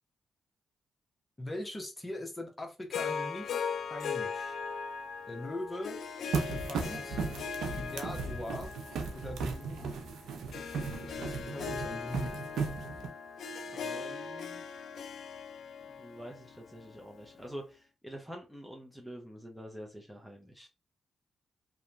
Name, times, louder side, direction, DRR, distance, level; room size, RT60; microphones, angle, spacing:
voice 1, 1.4-3.6 3.9-4.6 5.3-6.0 6.4-7.2 7.7-8.7 9.1-10.0 11.1-12.3, left 1 dB, 25° left, 1 dB, 1.0 m, -41 dB
Harp, 2.9-17.3, left 6 dB, 70° left, 0.3 m, -40 dB
sound 1, 6.3-13.1, right 4 dB, 75° right, 0.5 m, -36 dB
voice 2, 13.7-14.6 15.9-20.7, equal, ahead, 0 dB, 0.7 m, -46 dB
2.8 x 2.2 x 2.5 m, 0.29 s
supercardioid pair, 55°, 0 cm